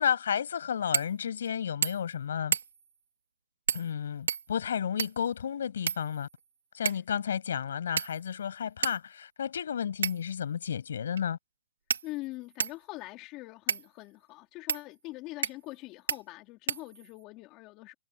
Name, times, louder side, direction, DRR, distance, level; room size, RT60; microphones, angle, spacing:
voice 1, 0.0-2.5 3.7-6.3 6.7-11.4, left 8 dB, 65° left, 6.9 m, -32 dB
sound 1, 0.9-1.1 1.5-1.6 1.8-2.1 2.5-2.9 3.7-3.9 4.3-5.3 5.9-6.4 6.9-7.1 8.0-8.4 8.8-9.0 10.0-10.4 11.2-11.3 11.9-12.8 13.7-13.9 14.7-14.8 15.4-15.8 16.1-16.2 16.7-17.2, right 7 dB, 80° right, 3.2 m, -32 dB
voice 2, 12.0-17.9, left 20 dB, 25° left, 3.6 m, -43 dB
hypercardioid pair, 155°, 0 cm